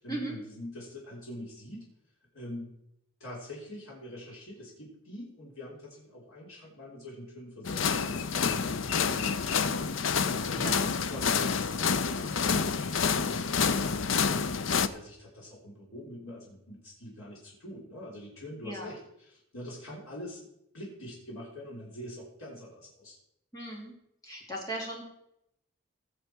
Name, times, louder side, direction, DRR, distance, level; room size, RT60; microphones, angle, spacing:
voice 1, 0.0-1.9 2.3-2.7 3.2-20.5 20.7-23.2, left 1 dB, 80° left, -4 dB, 3.3 m, -44 dB
sound 1, 7.6-14.9, left 6 dB, 65° left, 0.6 m, -28 dB
voice 2, 23.5-23.9 24.2-25.0, right 1 dB, 15° left, -2 dB, 3.0 m, -37 dB
17.5 x 6.9 x 4.6 m, 0.80 s
head